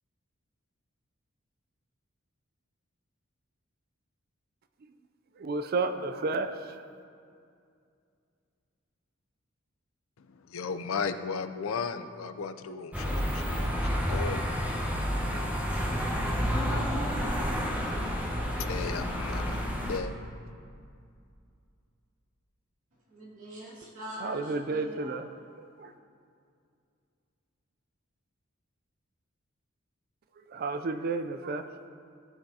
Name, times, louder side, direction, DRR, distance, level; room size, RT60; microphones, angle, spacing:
voice 1, 5.4-6.9 24.2-25.3 25.8-25.9 30.5-31.8, right 3 dB, 45° right, 9 dB, 0.4 m, -32 dB
voice 2, 10.2-14.4 18.6-20.1, left 5 dB, 80° left, 10 dB, 0.5 m, -35 dB
sound 1, 12.9-20.0, equal, 5° right, 1.0 m, -30 dB
voice 3, 16.3-18.7 23.1-25.2, equal, 80° right, -8 dB, 2.4 m, -42 dB
16.5 x 5.9 x 2.8 m, 2.4 s
head